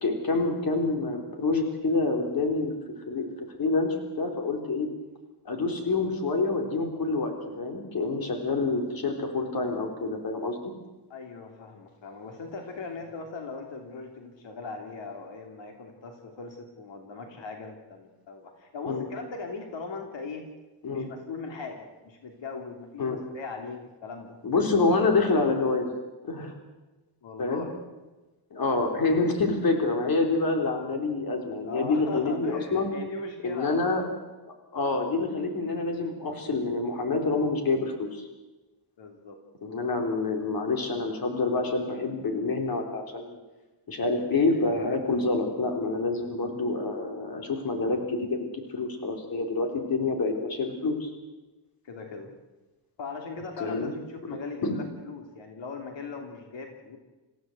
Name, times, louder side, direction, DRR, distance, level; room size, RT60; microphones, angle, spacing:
voice 1, 0.0-2.7 3.1-3.3 3.6-4.9 5.5-10.7 18.9-19.1 20.8-21.1 23.0-23.2 24.4-25.9 26.2-26.5 27.4-27.7 28.5-32.9 33.4-34.0 34.5-38.3 39.6-43.4 43.9-48.5 48.7-51.1 53.6-53.9 54.3-54.8, left 3 dB, 50° left, 4 dB, 3.8 m, -27 dB
voice 2, 11.1-20.4 20.9-24.4 27.2-27.7 31.6-34.0 39.0-39.4 51.8-52.3 53.0-57.0, left 4 dB, 80° left, 3 dB, 3.2 m, -39 dB
27.5 x 15.5 x 8.0 m, 1.1 s
wide cardioid pair, 180°, 44 cm